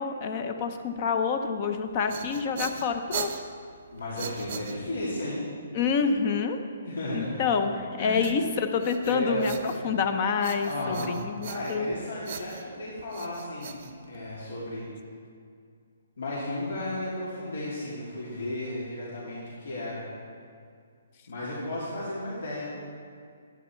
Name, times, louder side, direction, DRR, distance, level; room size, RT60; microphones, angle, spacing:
voice 1, 0.0-3.3 5.7-6.6 7.1-11.9, left 5 dB, 30° left, 8 dB, 0.6 m, -27 dB
sound 1, 1.8-5.2 8.2-10.1 10.4-11.9 12.2-14.5, right 7 dB, 40° right, 0.7 m, -40 dB
voice 2, 3.9-5.5 6.8-7.4 8.0-8.2 9.0-9.5 10.6-14.9 16.2-20.0 21.3-22.7, left 1 dB, 80° left, -7 dB, 2.7 m, -34 dB
11.0 x 8.9 x 4.4 m, 2.3 s
hypercardioid pair, 170°, 0 cm